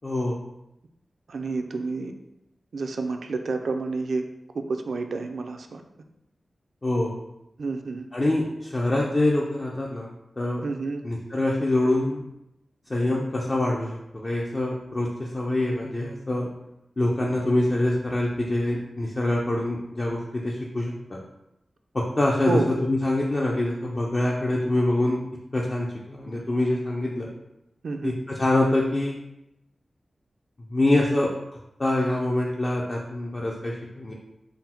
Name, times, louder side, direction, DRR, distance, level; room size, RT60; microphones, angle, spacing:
voice 1, 0.0-0.4 6.8-7.1 8.1-10.1 10.4-10.6 11.0-12.2 12.9-16.5 17.0-21.2 21.9-25.2 25.5-27.3 28.0-29.2 30.7-31.3 31.8-34.1, left 1 dB, 35° left, -2 dB, 0.4 m, -25 dB
voice 2, 1.3-2.1 2.7-4.3 4.5-5.8 7.6-8.1 10.6-11.0 22.5-22.7 27.8-28.1, right 3 dB, 85° right, 5 dB, 0.3 m, -29 dB
3.9 x 2.0 x 4.3 m, 0.87 s
wide cardioid pair, 95°, 0 cm